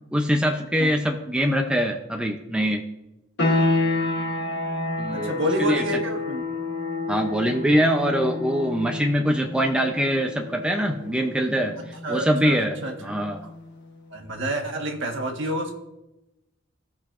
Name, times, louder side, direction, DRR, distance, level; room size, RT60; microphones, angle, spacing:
voice 1, 0.1-2.8 5.0-5.3 5.6-6.0 7.1-13.4, equal, 5° right, 2 dB, 0.6 m, -23 dB
sound 1, 3.4-13.9, left 2 dB, 55° left, 1.2 m, -29 dB
voice 2, 5.1-6.4 12.0-12.9 14.1-15.7, right 1 dB, 60° right, 2 dB, 1.5 m, -28 dB
17.5 x 5.9 x 2.5 m, 0.96 s
head